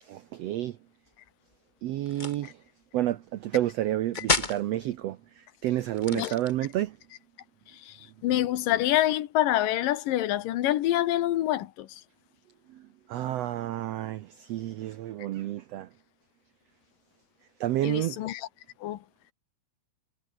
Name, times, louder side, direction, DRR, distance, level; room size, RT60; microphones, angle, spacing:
voice 1, 0.0-0.8 1.8-2.6 2.9-7.0 12.7-15.9 17.6-18.2, right 13 dB, 85° right, 1.4 m, -30 dB
sound 1, 2.1-2.5 4.1-4.6 5.9-6.8, left 3 dB, 20° left, 1.2 m, -30 dB
voice 2, 8.2-11.9 17.8-18.5 18.8-19.0, left 13 dB, 80° left, 2.8 m, -26 dB
omnidirectional pair, 4.0 m